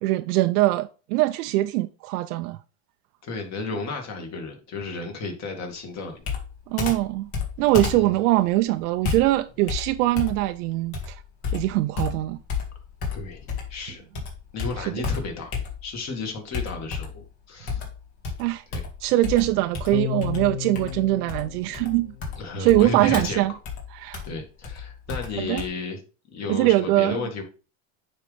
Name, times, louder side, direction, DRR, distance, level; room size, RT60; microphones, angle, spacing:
voice 1, 0.0-2.6 6.7-7.3 7.6-11.2 11.5-12.4 14.9-15.0 18.4-18.6 19.0-22.1 22.6-23.5 24.0-24.2 25.5-25.6 26.6-27.2, right 17 dB, 80° right, 0.6 m, -22 dB
voice 2, 3.2-6.2 7.9-8.2 13.1-14.0 14.5-15.5 15.8-17.8 18.7-18.8 22.4-23.6 24.3-26.0 26.3-27.4, left 3 dB, 35° left, 2.2 m, -33 dB
Computer keyboard, 6.2-13.8 14.1-16.0 16.5-17.3 17.7-25.7, left 5 dB, 50° left, 2.4 m, -32 dB
sound 1, 19.9-22.5, left 12 dB, 75° left, 0.7 m, -33 dB
9.4 x 4.0 x 3.4 m
supercardioid pair, 130°, 45 cm